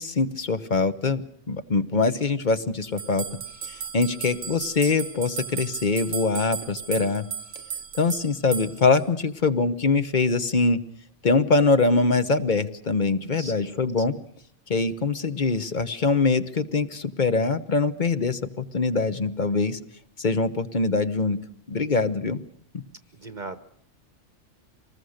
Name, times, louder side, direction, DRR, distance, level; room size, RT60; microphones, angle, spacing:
voice 1, 0.0-3.3 3.6-7.2 7.9-10.8 11.2-14.1 14.7-19.8 20.2-21.4 21.7-22.4 22.7-22.8, left 4 dB, 40° left, 12 dB, 1.1 m, -23 dB
sound 1, 3.0-9.0, right 7 dB, 85° right, 1.4 m, -35 dB
voice 2, 13.4-14.2 23.1-23.6, right 3 dB, 40° right, 12 dB, 1.0 m, -40 dB
25.0 x 20.0 x 6.5 m, 0.69 s
omnidirectional pair, 1.3 m